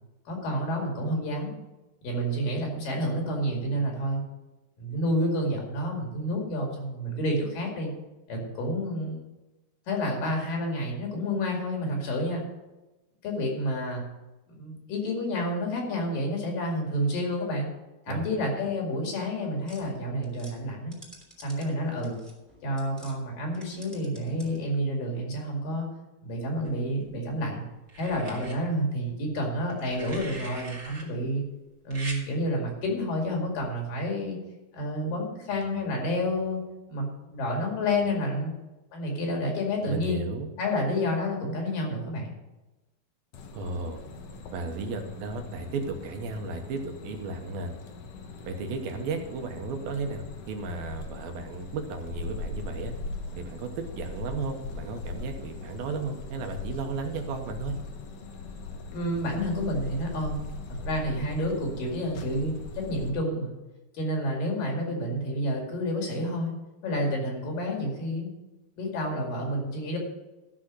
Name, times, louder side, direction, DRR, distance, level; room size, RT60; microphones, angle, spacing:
voice 1, 0.3-1.5 2.0-4.2 4.8-7.9 8.3-9.2 9.9-12.4 13.2-14.0 14.5-17.7 18.1-20.9 21.4-22.2 22.6-25.9 26.2-27.6 28.0-31.4 31.9-34.4 34.7-36.6 36.9-38.5 38.9-40.2 40.6-42.4 58.9-60.3 60.8-63.6 63.9-66.5 66.8-68.3 68.8-70.0, equal, 65° left, 0 dB, 3.8 m, -29 dB
sound 1, 19.6-23.2 23.5-24.7, right 1 dB, ahead, 2.0 m, -52 dB
sound 2, 26.6-27.3 27.9-28.6 29.7-31.0 31.9-32.2 33.6-33.8, right 2 dB, 25° right, 1.7 m, -42 dB
voice 2, 39.8-40.5 43.5-44.0 44.5-47.7 48.4-52.9 53.4-57.8, right 4 dB, 75° right, 4 dB, 2.7 m, -34 dB
sound 3, 43.3-63.1, left 3 dB, 85° left, 1.4 m, -40 dB
13.0 x 6.2 x 6.3 m, 1.0 s
omnidirectional pair, 4.4 m